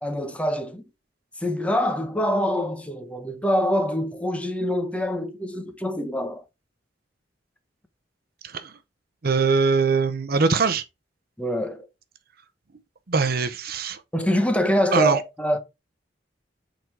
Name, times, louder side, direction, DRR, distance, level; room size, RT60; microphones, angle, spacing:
voice 1, 0.0-0.8 1.4-6.4 11.4-11.9 14.1-15.6, equal, 5° left, 1.0 m, -25 dB
voice 2, 9.2-10.8 13.1-14.0 14.9-15.2, right 4 dB, 55° right, 0.8 m, -22 dB
7.7 x 3.9 x 4.6 m
head